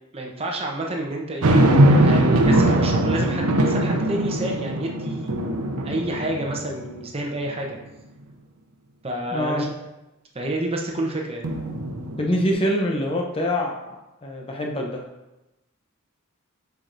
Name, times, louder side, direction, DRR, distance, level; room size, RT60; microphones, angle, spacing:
voice 1, 0.1-5.3 5.8-7.8 9.0-9.8 10.3-11.4, right 1 dB, 25° right, 0 dB, 0.7 m, -29 dB
sound 1, 1.4-7.0 7.5-7.6 11.4-12.5, right 1 dB, 90° right, 0.7 m, -20 dB
voice 2, 9.3-9.7 12.2-15.0, equal, 25° left, 1 dB, 0.6 m, -25 dB
8.1 x 4.7 x 2.6 m, 0.99 s
head